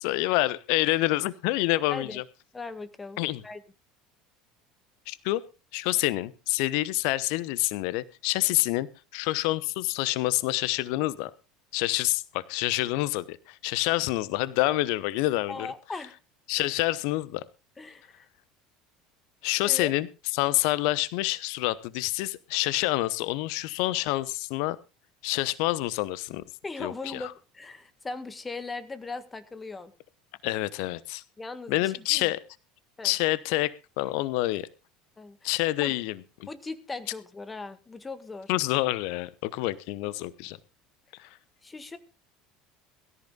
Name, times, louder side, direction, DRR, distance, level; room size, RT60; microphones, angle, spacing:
voice 1, 0.0-2.2 3.2-3.4 5.1-5.4 5.7-8.9 9.1-11.3 11.7-15.7 16.5-17.4 19.4-20.1 20.3-24.8 25.2-26.4 26.8-27.2 30.4-31.2 31.7-32.4 33.0-34.7 35.4-36.5 38.5-40.6 41.2-41.3, left 18 dB, 60° left, 19 dB, 0.9 m, -27 dB
voice 2, 2.5-3.6 15.5-16.2 17.8-18.3 19.6-19.9 26.6-29.9 31.4-32.3 33.0-33.1 35.2-35.5 35.8-35.9 36.5-38.5 41.6-42.0, left 3 dB, 20° left, 12 dB, 1.7 m, -39 dB
22.5 x 14.0 x 2.4 m, 0.30 s
figure-of-eight pair, 65°, 0 cm